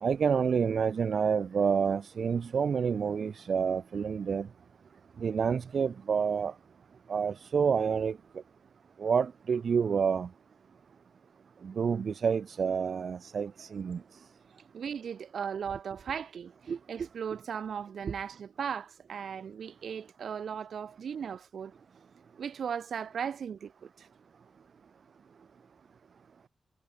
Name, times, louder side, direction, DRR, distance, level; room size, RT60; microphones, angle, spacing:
voice 1, 0.0-4.5 5.2-6.5 7.1-8.2 9.0-10.3 11.6-14.0 16.7-16.8, right 6 dB, 60° right, 0.9 m, -28 dB
voice 2, 14.7-21.7 22.4-24.1, right 7 dB, 75° right, 5.2 m, -37 dB
wide cardioid pair, 175°, 0 cm